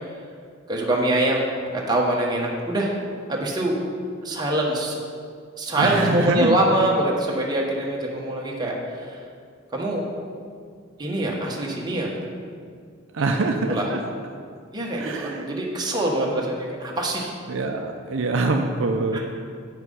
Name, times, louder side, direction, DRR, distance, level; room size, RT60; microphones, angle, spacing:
voice 1, 0.7-3.0 3.3-3.8 4.2-5.0 5.6-8.7 9.7-10.0 11.0-12.2 13.2-13.4 13.7-13.9 14.7-17.3 19.1-19.2, right 1 dB, 20° right, -2 dB, 1.2 m, -24 dB
voice 2, 5.8-6.6 13.1-14.0 14.9-15.5 16.2-16.4 17.5-19.2, right 3 dB, 65° right, 4 dB, 0.5 m, -24 dB
8.5 x 5.8 x 5.5 m, 2.2 s
head